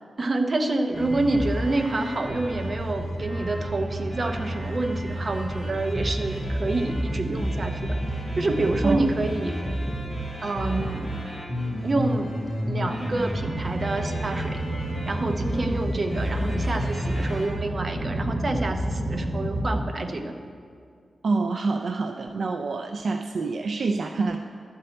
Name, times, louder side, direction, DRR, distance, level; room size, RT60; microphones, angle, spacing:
voice 1, 0.2-8.0 8.4-9.6 10.4-11.0 11.8-12.4 12.7-14.6 15.1-20.4, right 2 dB, 40° right, 6 dB, 0.8 m, -27 dB
sound 1, 0.9-19.8, right 1 dB, 10° left, 2.7 m, -29 dB
voice 2, 21.2-24.4, right 3 dB, 65° right, 5 dB, 0.4 m, -26 dB
12.0 x 4.4 x 7.6 m, 2.2 s
wide cardioid pair, 90°, 0 cm